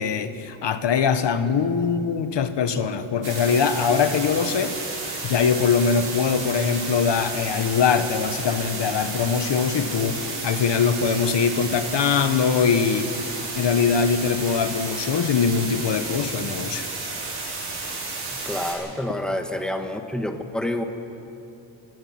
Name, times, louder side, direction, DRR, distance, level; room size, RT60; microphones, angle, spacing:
voice 1, 0.0-4.8 5.2-13.1 13.5-16.9, left 6 dB, 55° left, 10 dB, 1.2 m, -22 dB
sound 1, 3.2-18.7, right 3 dB, 55° right, 6.5 m, -32 dB
voice 2, 18.4-20.8, left 1 dB, ahead, 5 dB, 1.3 m, -28 dB
29.0 x 16.0 x 5.9 m, 2.8 s
wide cardioid pair, 150°, 50 cm